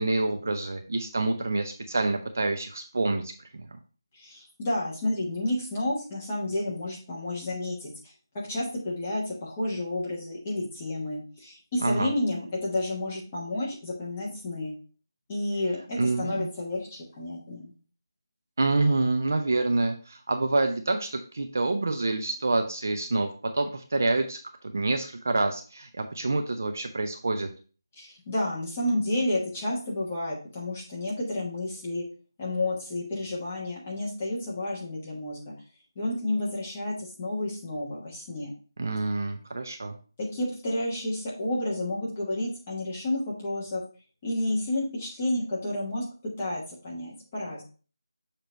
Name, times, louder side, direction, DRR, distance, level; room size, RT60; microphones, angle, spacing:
voice 1, 0.0-3.7 11.8-12.1 16.0-16.5 18.6-23.3 23.5-24.4 24.7-27.5 38.8-39.9, right 2 dB, 40° right, 5 dB, 0.7 m, -27 dB
voice 2, 4.2-7.9 8.3-14.7 15.3-17.7 28.0-32.0 32.4-35.5 35.9-38.5 40.2-43.8 44.2-47.6, left 1 dB, 15° left, -5 dB, 1.3 m, -31 dB
6.6 x 3.0 x 5.1 m, 0.37 s
figure-of-eight pair, 175°, 2 cm